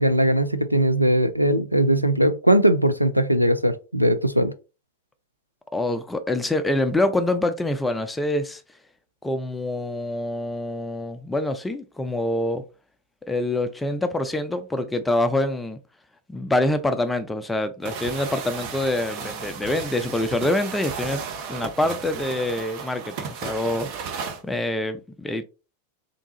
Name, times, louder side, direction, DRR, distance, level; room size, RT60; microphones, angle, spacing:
voice 1, 0.0-4.5, right 1 dB, 90° right, 0.3 m, -20 dB
voice 2, 5.7-8.6 9.2-12.6 13.3-15.8 16.3-21.2 21.5-25.4, left 1 dB, 10° left, 0.4 m, -25 dB
sound 1, 17.8-24.4, right 6 dB, 45° right, 0.7 m, -34 dB
3.5 x 2.6 x 2.9 m
figure-of-eight pair, 90°, 0 cm